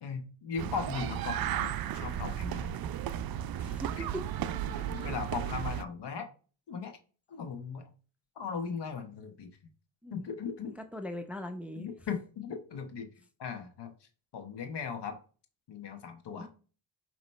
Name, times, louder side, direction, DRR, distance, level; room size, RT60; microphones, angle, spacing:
voice 1, 0.0-2.7 4.0-4.1 4.8-6.3 6.7-6.9 7.3-7.9 8.4-9.5 10.1-10.7 11.8-13.1 13.4-13.9 14.3-15.2 15.7-16.5, left 6 dB, 60° left, 1.1 m, -38 dB
sound 1, 0.6-5.8, right 10 dB, 50° right, 0.5 m, -34 dB
voice 2, 3.6-4.2 4.9-5.1 10.0-10.3 10.6-11.9 16.4-16.5, equal, 5° right, 0.6 m, -40 dB
5.2 x 3.0 x 3.1 m
supercardioid pair, 55°, 47 cm